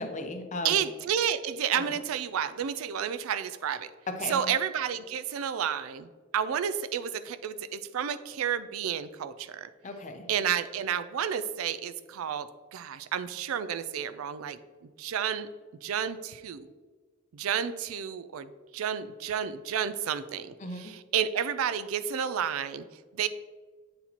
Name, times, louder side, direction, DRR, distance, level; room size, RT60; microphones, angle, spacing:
voice 1, 0.0-0.8 1.8-1.9 4.1-4.5 9.8-10.3 20.6-20.8, left 2 dB, 35° left, 5 dB, 0.6 m, -36 dB
voice 2, 0.6-3.9 4.3-9.7 10.3-14.6 15.0-15.5 15.8-16.7 17.3-22.8 23.1-23.3, right 8 dB, 85° right, 14 dB, 0.4 m, -31 dB
8.5 x 4.0 x 2.9 m, 1.5 s
head